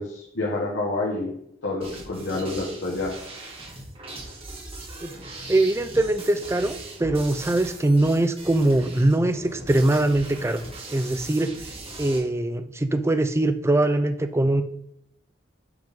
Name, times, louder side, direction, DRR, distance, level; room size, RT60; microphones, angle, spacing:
voice 1, 0.0-1.3 1.6-3.1, left 2 dB, 65° left, -4 dB, 1.4 m, -28 dB
sound 1, 1.8-12.2, right 2 dB, 30° right, 1.8 m, -40 dB
voice 2, 5.5-10.6 10.9-11.5 12.0-14.6, right 2 dB, 15° right, 9 dB, 0.4 m, -22 dB
7.8 x 5.3 x 3.6 m, 0.74 s
head